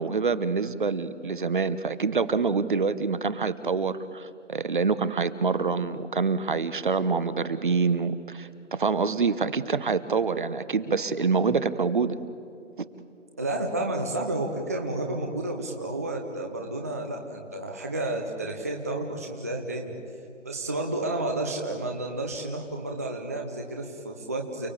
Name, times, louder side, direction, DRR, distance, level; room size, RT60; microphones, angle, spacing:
voice 1, 0.0-12.1, right 4 dB, 45° right, 14 dB, 1.0 m, -26 dB
voice 2, 13.4-19.9 20.4-24.7, right 2 dB, 15° right, 2 dB, 0.7 m, -31 dB
29.0 x 19.5 x 8.5 m, 2.6 s
figure-of-eight pair, 160°, 36 cm